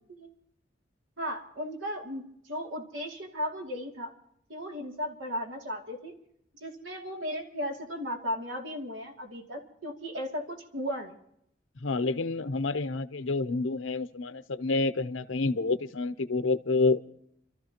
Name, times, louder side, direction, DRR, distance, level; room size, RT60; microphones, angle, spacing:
voice 1, 1.2-4.1 4.5-6.1 6.6-11.2, equal, 90° right, 2 dB, 2.6 m, -36 dB
voice 2, 11.8-17.0, left 3 dB, 90° left, 11 dB, 0.8 m, -28 dB
29.5 x 13.5 x 3.0 m, 0.72 s
head